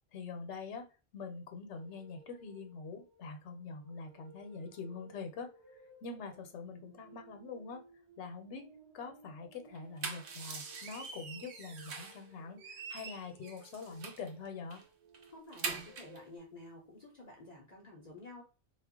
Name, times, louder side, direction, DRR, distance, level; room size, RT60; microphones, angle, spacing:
voice 1, 0.1-0.9 1.1-5.5 6.0-7.8 8.2-8.7 8.9-14.8, left 4 dB, 70° left, 6 dB, 0.9 m, -44 dB
sound 1, 1.7-16.4, right 3 dB, 20° right, 0.8 m, -60 dB
sound 2, 9.8-12.2 12.6-14.3 14.7-14.8 15.1-16.2, right 5 dB, 70° right, 0.9 m, -43 dB
voice 2, 15.3-18.4, left 1 dB, 50° left, -1 dB, 0.5 m, -51 dB
2.4 x 2.1 x 3.5 m, 0.33 s
omnidirectional pair, 1.2 m